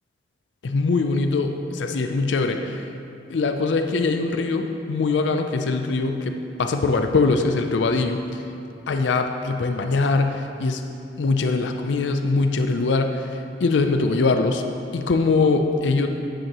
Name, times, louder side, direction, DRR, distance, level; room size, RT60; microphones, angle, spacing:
voice 1, 0.6-2.9 3.3-8.4 8.9-10.8 11.2-14.6 14.9-16.1, left 3 dB, 85° left, 6 dB, 0.5 m, -22 dB
10.5 x 9.1 x 3.0 m, 2.7 s
head